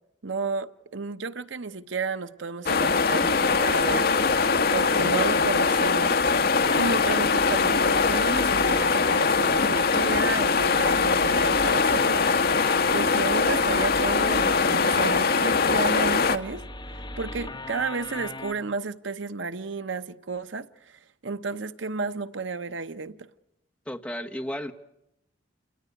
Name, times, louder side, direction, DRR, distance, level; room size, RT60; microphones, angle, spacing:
voice 1, 0.2-4.3 4.7-6.2 6.7-12.3 12.9-16.6 16.9-23.3, right 4 dB, 70° right, 0.9 m, -32 dB
sound 1, 2.7-16.4, left 4 dB, 55° left, 1.2 m, -22 dB
sound 2, 6.6-18.5, left 2 dB, 25° left, 2.5 m, -39 dB
voice 2, 23.9-24.7, equal, 5° left, 1.4 m, -33 dB
28.5 x 18.0 x 9.9 m
head